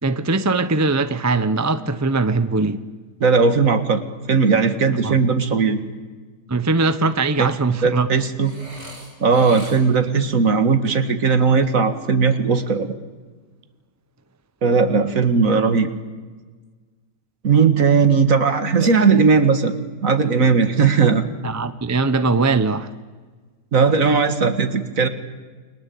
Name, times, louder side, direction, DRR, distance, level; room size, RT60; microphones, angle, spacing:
voice 1, 0.0-2.8 4.9-5.2 6.5-8.1 21.4-22.9, right 3 dB, 15° right, 0.6 m, -21 dB
voice 2, 3.2-4.0 4.3-5.8 7.4-7.5 7.8-8.6 9.2-12.9 14.6-15.9 17.4-19.8 20.0-21.2 23.7-25.1, right 5 dB, 50° right, 2.1 m, -17 dB
Burping eructation, 8.4-10.1 18.8-19.6, right 1 dB, 75° right, 6.9 m, -39 dB
29.5 x 22.0 x 8.6 m
omnidirectional pair, 1.8 m